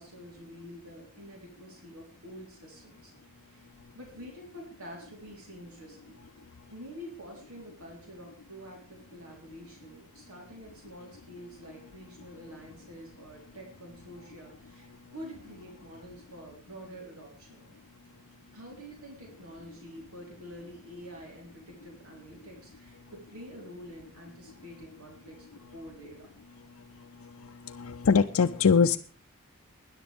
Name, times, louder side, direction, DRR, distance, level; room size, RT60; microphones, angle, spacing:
voice 1, 0.0-3.1 3.5-6.2 6.7-17.7 18.5-25.5 25.7-26.3, equal, 85° right, -1 dB, 3.8 m, -47 dB
voice 2, 27.8-29.0, left 5 dB, 70° left, 4 dB, 0.5 m, -22 dB
20.0 x 10.5 x 3.5 m, 0.43 s
head